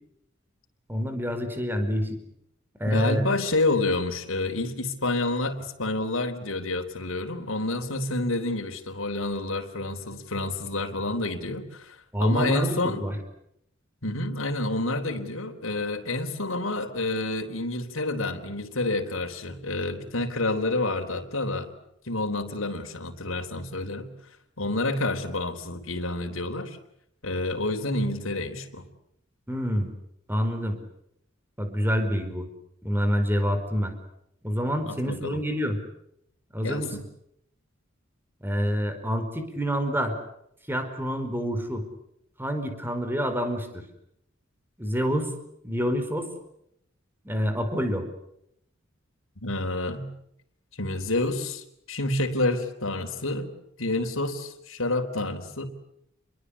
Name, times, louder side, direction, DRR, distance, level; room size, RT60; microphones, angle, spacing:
voice 1, 0.9-2.2 2.8-3.2 12.1-13.2 29.5-29.9 30.3-30.8 31.6-32.5 32.8-33.9 34.4-35.8 36.5-36.9 38.4-40.2 40.7-41.9 42.4-43.7 44.8-45.3 45.6-46.2 47.2-48.0, equal, 10° right, 7 dB, 4.8 m, -27 dB
voice 2, 2.8-13.0 14.0-21.7 22.1-24.1 24.6-26.8 27.2-28.8 34.9-35.4 36.6-37.1 49.4-50.1 50.8-53.5 53.8-55.7, left 2 dB, 85° left, 5 dB, 3.8 m, -29 dB
29.5 x 22.5 x 8.4 m, 0.76 s
head